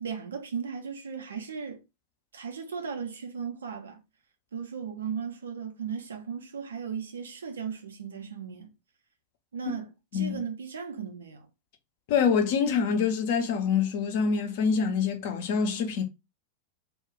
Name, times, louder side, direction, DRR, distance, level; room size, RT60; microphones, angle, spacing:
voice 1, 0.0-1.8 2.3-4.0 4.5-8.7 9.5-11.5, right 6 dB, 70° right, 0.6 m, -36 dB
voice 2, 12.1-16.0, left 6 dB, 50° left, 0.6 m, -25 dB
2.3 x 2.2 x 3.6 m
figure-of-eight pair, 90°, 0 cm